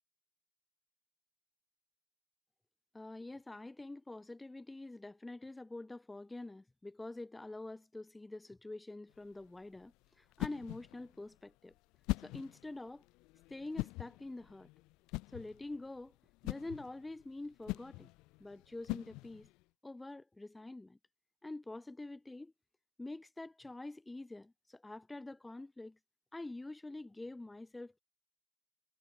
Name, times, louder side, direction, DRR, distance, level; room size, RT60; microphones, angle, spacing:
voice 1, 2.9-11.7 12.2-13.0 13.5-14.7 15.3-16.1 16.4-18.1 18.4-19.5 19.8-21.0 21.4-22.5 23.0-26.0 26.3-28.0, left 2 dB, 10° left, 6.2 m, -46 dB
sound 1, 9.1-19.6, left 23 dB, 80° left, 2.0 m, -43 dB
cardioid pair, 140°, 0 cm